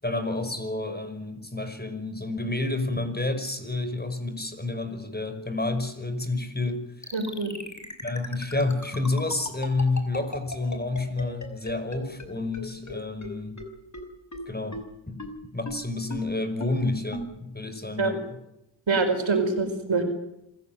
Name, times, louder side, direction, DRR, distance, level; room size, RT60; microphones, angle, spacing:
voice 1, 0.0-7.1 8.0-13.6 14.5-14.8 15.1-15.2 15.5-18.2, left 2 dB, 20° left, 8 dB, 5.4 m, -29 dB
sound 1, 7.0-12.3 12.5-12.6 12.9-13.0 13.2-13.3 13.6-13.7 13.9-14.0 14.3-14.4 14.7-14.8 15.2-15.3 15.7-15.8 16.1-16.2 16.6-16.7 17.1-17.2, left 2 dB, 35° left, 5.6 m, -36 dB
voice 2, 7.1-7.5 18.0-18.2 18.9-20.0, right 3 dB, 70° right, 6 dB, 4.9 m, -25 dB
26.0 x 15.5 x 9.2 m, 0.86 s
cardioid pair, 55°, 47 cm